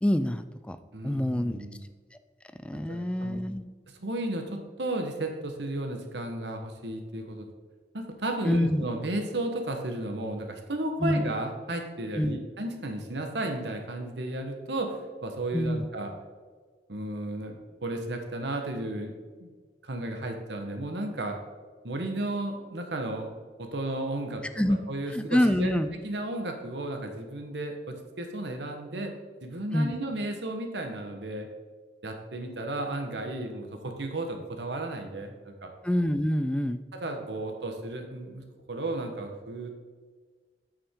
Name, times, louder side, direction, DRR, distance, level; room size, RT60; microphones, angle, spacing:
voice 1, 0.0-0.8 1.0-1.6 2.6-3.7 8.4-8.8 11.0-11.3 12.2-12.4 15.5-15.8 24.6-24.8 25.1-25.9 29.7-30.0 35.8-36.8, left 1 dB, 5° left, 11 dB, 0.3 m, -26 dB
voice 2, 0.9-1.8 2.9-3.4 4.0-7.5 7.9-16.1 16.9-19.1 19.4-19.5 19.8-21.4 21.8-23.3 23.6-24.4 24.7-29.1 29.4-31.5 32.0-35.7 37.0-39.7, right 1 dB, 75° right, 4 dB, 1.2 m, -34 dB
8.8 x 7.0 x 3.7 m, 1.5 s
head